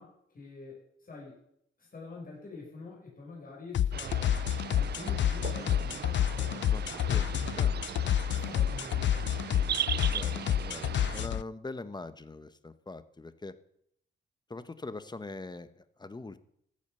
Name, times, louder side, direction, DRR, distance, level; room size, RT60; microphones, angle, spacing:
voice 1, 0.0-1.4 1.8-4.4 4.7-7.1 8.3-9.9, left 3 dB, 45° left, -3 dB, 5.8 m, -47 dB
sound 1, 3.7-11.4, left 11 dB, 65° left, 0.4 m, -29 dB
sound 2, 3.9-11.3, right 10 dB, 55° right, 0.4 m, -38 dB
voice 2, 6.7-7.3 7.5-8.0 10.0-13.6 14.5-16.4, left 3 dB, 20° left, 13 dB, 1.0 m, -43 dB
14.5 x 8.8 x 6.7 m, 0.73 s
cardioid pair, 80°, 20 cm